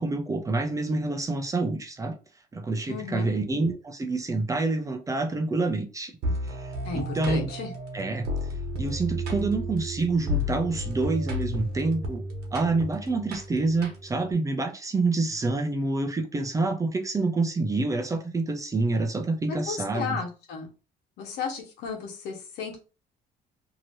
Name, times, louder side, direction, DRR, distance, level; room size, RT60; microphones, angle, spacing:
voice 1, 0.0-2.2 2.5-7.5 7.9-8.3 8.8-12.2 12.5-20.2, right 3 dB, 20° right, 0.5 m, -27 dB
voice 2, 2.9-3.3 6.8-7.7 19.5-20.7 21.2-22.8, left 6 dB, 80° left, 1.1 m, -34 dB
sound 1, 6.2-14.3, equal, 80° right, 1.0 m, -32 dB
2.9 x 2.9 x 2.6 m
cardioid pair, 110°, 17 cm